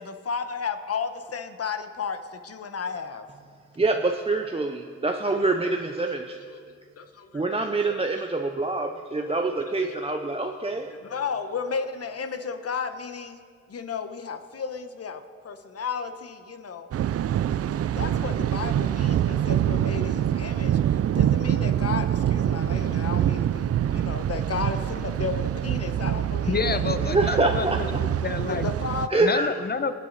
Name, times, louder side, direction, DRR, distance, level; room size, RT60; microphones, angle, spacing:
voice 1, 0.0-3.3 6.2-7.4 7.9-8.2 9.2-13.4 13.7-16.9 18.0-26.8 28.4-29.4, left 5 dB, 50° left, 8 dB, 1.1 m, -34 dB
voice 2, 3.8-6.4 7.3-10.9 27.0-27.8 29.1-29.5, right 3 dB, 20° right, 3 dB, 0.7 m, -25 dB
Thunder, 16.9-29.1, right 10 dB, 50° right, 0.4 m, -25 dB
voice 3, 26.5-28.6 29.2-29.9, left 5 dB, 30° left, 11 dB, 0.8 m, -28 dB
22.0 x 8.4 x 4.1 m, 2.1 s
cardioid pair, 60°, 31 cm